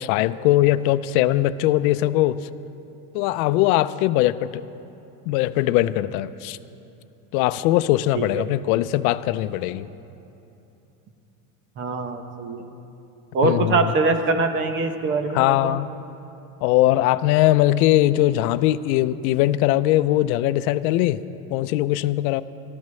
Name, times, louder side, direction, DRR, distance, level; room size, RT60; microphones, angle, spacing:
voice 1, 0.0-2.5 3.1-4.6 5.3-6.6 7.3-9.9 13.4-13.9 15.3-15.9 16.6-21.2 21.5-22.4, left 15 dB, 85° left, 14 dB, 0.6 m, -20 dB
voice 2, 8.1-8.5 11.8-12.6 13.3-15.8, right 3 dB, 30° right, 7 dB, 0.8 m, -23 dB
22.5 x 14.0 x 3.2 m, 2.8 s
cardioid pair, 165°, 42 cm